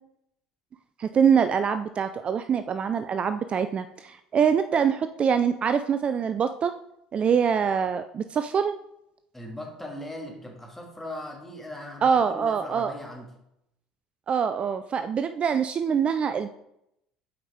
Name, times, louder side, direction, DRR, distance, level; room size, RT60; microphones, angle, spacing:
voice 1, 1.0-6.8 7.1-8.7 12.0-12.9 14.3-16.5, right 7 dB, 40° right, 10 dB, 0.3 m, -24 dB
voice 2, 9.3-13.3, left 1 dB, 10° left, 0 dB, 2.1 m, -39 dB
7.8 x 5.0 x 3.6 m, 0.80 s
hypercardioid pair, 65°, 3 cm